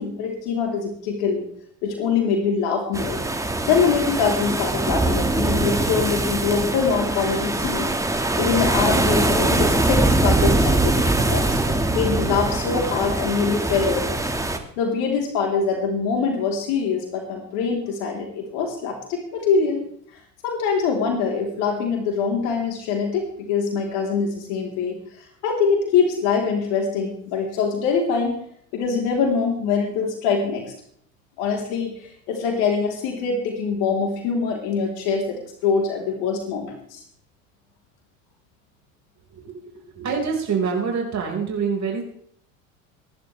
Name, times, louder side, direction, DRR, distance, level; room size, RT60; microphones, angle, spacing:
voice 1, 0.0-1.4 1.8-3.2 3.7-7.9 8.4-11.5 11.9-14.2 14.8-19.8 20.4-28.4 28.7-30.7 31.4-37.0, left 5 dB, 70° left, 1 dB, 3.7 m, -24 dB
sound 1, 2.9-14.6, right 2 dB, 10° right, 1.9 m, -22 dB
voice 2, 39.9-42.0, right 6 dB, 45° right, 0 dB, 5.2 m, -25 dB
23.0 x 11.0 x 3.4 m, 0.64 s
hypercardioid pair, 80°, 41 cm